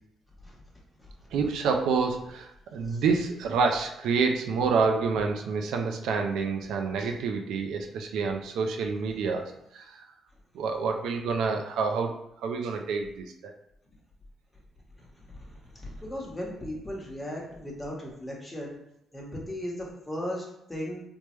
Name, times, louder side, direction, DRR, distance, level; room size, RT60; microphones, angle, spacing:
voice 1, 1.3-10.0 10.5-12.1 12.4-13.5, right 5 dB, 80° right, 4 dB, 0.3 m, -28 dB
voice 2, 15.0-18.8 19.1-21.0, left 1 dB, 10° left, -3 dB, 0.9 m, -37 dB
3.2 x 2.1 x 3.1 m, 0.78 s
cardioid pair, 90°, 0 cm